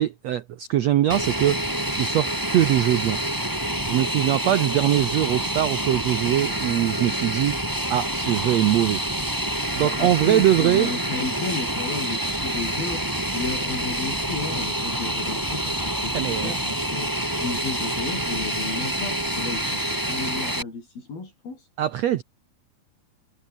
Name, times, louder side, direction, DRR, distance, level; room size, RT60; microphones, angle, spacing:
voice 1, 0.0-1.7 2.0-3.2 3.8-7.6 7.9-9.0 9.7-10.9 16.1-16.5 21.8-22.2, right 12 dB, 90° right, 1.5 m, -22 dB
Fixed-wing aircraft airplane, 1.1-20.6, right 1 dB, 5° right, 3.5 m, -27 dB
voice 2, 9.8-21.7, left 4 dB, 70° left, 10.0 m, -33 dB
omnidirectional pair, 4.4 m